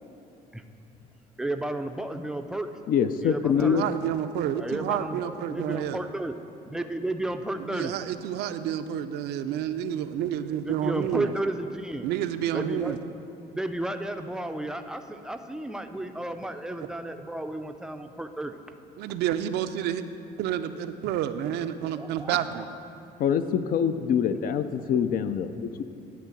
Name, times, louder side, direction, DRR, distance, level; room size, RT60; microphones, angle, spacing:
voice 1, 1.4-2.8 3.2-3.8 4.6-6.3 6.7-8.0 10.6-12.1 12.5-12.9 13.5-18.6 22.0-22.7, right 1 dB, 5° right, 7 dB, 0.4 m, -33 dB
voice 2, 2.9-3.8 23.2-25.8, left 7 dB, 60° left, 11 dB, 0.4 m, -25 dB
voice 3, 3.6-6.0 7.6-11.3 12.0-13.0 19.0-20.0 20.4-22.6, right 10 dB, 80° right, 10 dB, 0.4 m, -29 dB
10.5 x 3.8 x 7.1 m, 2.7 s
cardioid pair, 110°, 17 cm